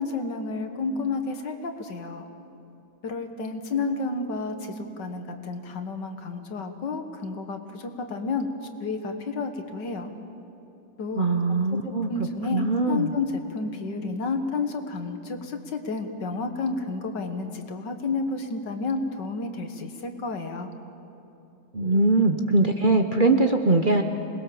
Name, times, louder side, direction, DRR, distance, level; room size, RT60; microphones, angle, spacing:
voice 1, 0.0-2.3 3.0-8.5 8.8-10.1 11.0-11.6 12.1-20.7, left 3 dB, 80° left, 6 dB, 2.2 m, -31 dB
voice 2, 11.2-12.1 12.5-13.1 21.7-24.0, right 2 dB, 40° right, 5 dB, 0.8 m, -21 dB
26.5 x 20.5 x 7.1 m, 2.9 s
omnidirectional pair, 1.9 m